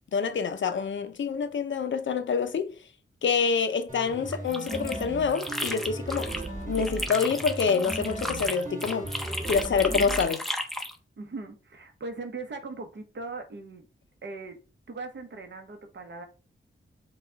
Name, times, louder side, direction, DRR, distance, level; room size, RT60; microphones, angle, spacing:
voice 1, 0.1-2.7 3.2-6.3 6.7-9.1 9.5-10.4, left 6 dB, 70° left, 0.5 m, -27 dB
sound 1, 3.9-10.2, right 2 dB, 40° right, 1.7 m, -36 dB
sound 2, 4.3-6.5 6.8-11.0, left 1 dB, ahead, 0.5 m, -34 dB
voice 2, 11.2-13.9 14.2-14.6 14.9-16.3, right 3 dB, 60° right, 1.0 m, -39 dB
5.8 x 2.3 x 3.9 m
wide cardioid pair, 165°, 21 cm